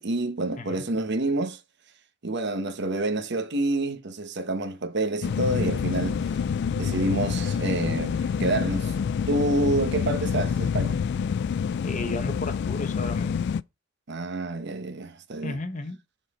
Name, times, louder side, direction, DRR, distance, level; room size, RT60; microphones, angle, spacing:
voice 1, 0.0-1.6 2.2-6.3 6.8-8.9 9.3-11.0 14.1-15.6, right 2 dB, 60° right, 1.1 m, -28 dB
sound 1, 5.2-13.6, left 6 dB, 60° left, 0.3 m, -27 dB
voice 2, 11.8-13.4 15.4-16.0, left 2 dB, 40° left, 1.1 m, -34 dB
7.3 x 4.1 x 4.2 m
head